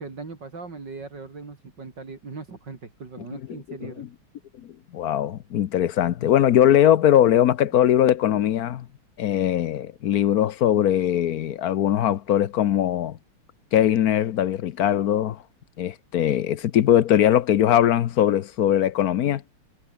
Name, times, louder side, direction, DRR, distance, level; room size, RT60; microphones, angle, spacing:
voice 1, 0.0-4.1, right 4 dB, 55° right, 3.9 m, -39 dB
voice 2, 4.9-8.9 9.2-13.2 13.7-15.4 15.8-19.4, left 11 dB, 60° left, 1.0 m, -20 dB
omnidirectional pair, 2.3 m